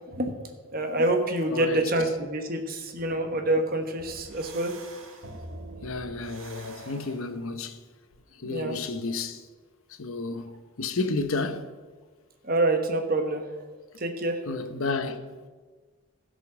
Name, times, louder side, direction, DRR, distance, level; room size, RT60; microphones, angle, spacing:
voice 1, 0.0-4.7 8.4-8.7 12.4-13.4 14.0-14.4, right 1 dB, 45° right, 1.2 m, -27 dB
voice 2, 1.5-1.8 5.8-7.8 8.4-9.5 9.9-11.7 14.5-15.2, left 3 dB, 75° left, 0.8 m, -31 dB
sound 1, 4.0-7.5, right 2 dB, 70° right, 1.3 m, -44 dB
15.0 x 5.3 x 6.1 m
head